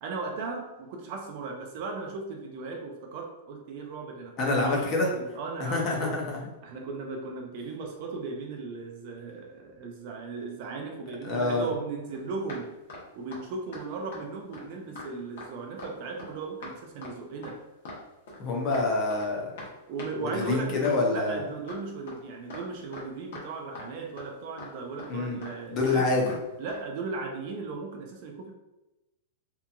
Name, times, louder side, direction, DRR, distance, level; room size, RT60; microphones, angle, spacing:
voice 1, 0.0-6.2 6.6-12.8 13.2-17.7 19.9-26.1 26.6-28.5, right 4 dB, 35° right, 2 dB, 0.3 m, -37 dB
voice 2, 4.4-5.1 5.7-6.4 11.2-11.7 18.4-19.5 20.3-21.4 25.1-25.4 25.7-26.4, left 3 dB, 20° left, -1 dB, 0.5 m, -26 dB
sound 1, 12.1-12.2 12.5-12.6 12.9-13.0 13.3-13.4 13.7-13.8 14.1-14.2 14.5-14.7 15.0-15.1 15.4-15.5 15.8-15.9 16.2-16.3 16.6-16.7 17.0-17.1 17.4-17.5 17.9-18.0 18.3-18.9 19.1-19.3 19.6-19.7 20.0-20.1 20.4-20.5 20.8-21.0 21.3-21.4 21.7-21.8 22.1-22.2 22.5-22.6 22.9-23.1 23.3-23.5 23.8-23.9 24.2-24.3 24.6-24.7 25.0-25.1 25.4-25.6 25.9-26.0 26.3-26.4 26.7-26.8, left 2 dB, 60° left, 0.8 m, -42 dB
2.7 x 2.4 x 2.3 m, 0.98 s
supercardioid pair, 180°, 0 cm